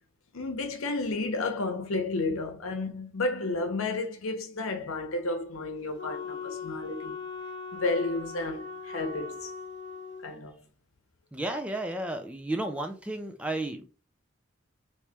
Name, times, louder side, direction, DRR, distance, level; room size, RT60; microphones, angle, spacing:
voice 1, 0.3-7.1 7.7-9.5 10.2-10.5, left 2 dB, 85° left, 0.8 m, -32 dB
Wind instrument woodwind instrument, 6.0-10.3, left 5 dB, 55° left, 0.5 m, -40 dB
voice 2, 11.3-13.8, right 1 dB, 5° right, 0.3 m, -33 dB
3.0 x 2.8 x 3.3 m
head